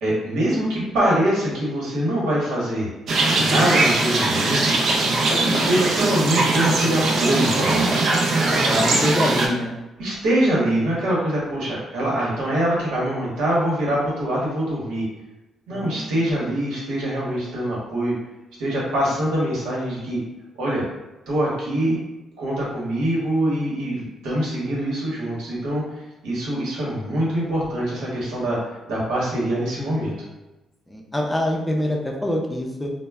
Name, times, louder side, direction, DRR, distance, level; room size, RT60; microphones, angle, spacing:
voice 1, 0.0-2.9 3.3-4.7 5.2-7.9 8.6-9.0 10.0-15.0 15.7-18.1 18.6-20.2 20.5-20.8 21.3-22.0 22.4-30.1, right 1 dB, 85° right, -5 dB, 0.9 m, -24 dB
sound 1, 3.1-9.5, right 2 dB, 60° right, 0.4 m, -20 dB
voice 2, 8.4-9.7 15.7-16.2 30.9-32.9, left 1 dB, 10° left, -1 dB, 0.4 m, -26 dB
2.1 x 2.0 x 3.4 m, 1.0 s
cardioid pair, 90°, 0 cm